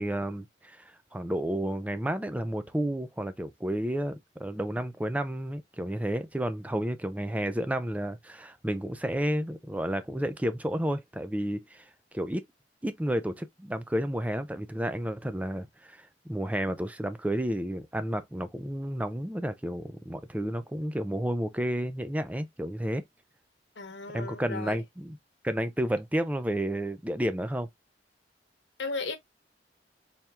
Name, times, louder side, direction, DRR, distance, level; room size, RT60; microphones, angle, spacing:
voice 1, 0.0-11.9 12.1-12.4 12.8-23.0 24.1-25.2 25.4-27.7, right 1 dB, 10° right, 0.5 m, -31 dB
voice 2, 23.8-24.8 28.8-29.2, left 3 dB, 90° left, 1.0 m, -35 dB
4.3 x 3.4 x 2.3 m
head